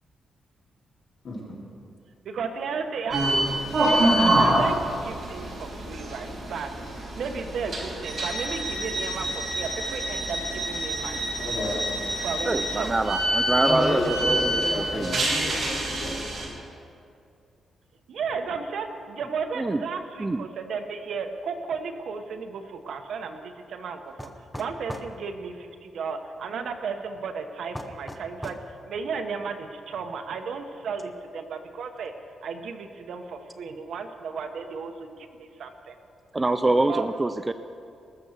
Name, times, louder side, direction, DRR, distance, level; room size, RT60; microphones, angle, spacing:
voice 1, 2.2-3.4 3.7-6.7 7.1-11.3 12.2-13.2 18.1-28.6 28.9-32.1 32.4-35.9 36.8-37.1, right 5 dB, 60° right, 6 dB, 1.0 m, -34 dB
sound 1, 3.1-16.5, right 1 dB, 35° right, 3.2 m, -26 dB
voice 2, 11.4-11.8 13.6-16.2, left 2 dB, 55° left, -5 dB, 3.8 m, -30 dB
voice 3, 12.4-15.2 19.6-19.8 20.2-20.5 36.3-37.5, right 2 dB, 15° right, 10 dB, 0.3 m, -25 dB
sound 2, 24.2-25.1 27.7-28.7, equal, 5° left, 0.7 m, -38 dB
20.0 x 7.0 x 6.6 m, 2.4 s
wide cardioid pair, 165°, 0 cm